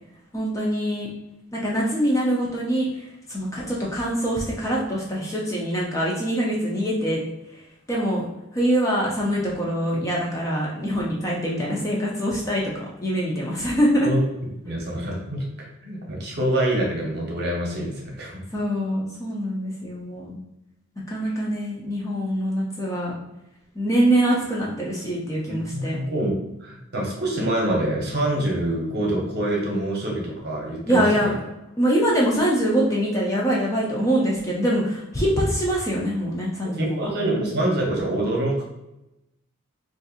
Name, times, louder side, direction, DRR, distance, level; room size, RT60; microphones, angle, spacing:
voice 1, 0.3-1.1 1.5-2.9 3.3-7.2 7.9-8.2 8.5-14.1 18.5-20.3 21.1-23.1 23.7-26.0 30.9-31.4 31.8-37.0, equal, 15° left, -4 dB, 0.5 m, -24 dB
voice 2, 14.6-18.4 21.3-21.4 25.5-26.3 26.6-31.1 36.8-38.6, right 1 dB, 50° right, -1 dB, 0.8 m, -26 dB
4.1 x 2.6 x 2.4 m, 0.90 s
head